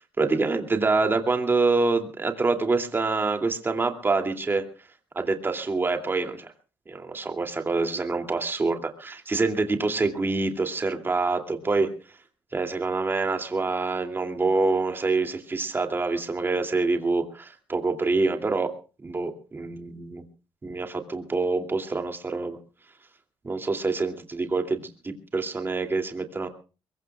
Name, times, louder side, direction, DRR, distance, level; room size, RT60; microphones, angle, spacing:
voice 1, 0.2-4.6 5.1-6.5 6.9-11.9 12.5-18.7 19.0-20.2 20.6-22.6 23.4-26.5, right 3 dB, 25° right, 5 dB, 2.7 m, -26 dB
23.0 x 22.5 x 2.4 m, 0.35 s
cardioid pair, 110°, 9 cm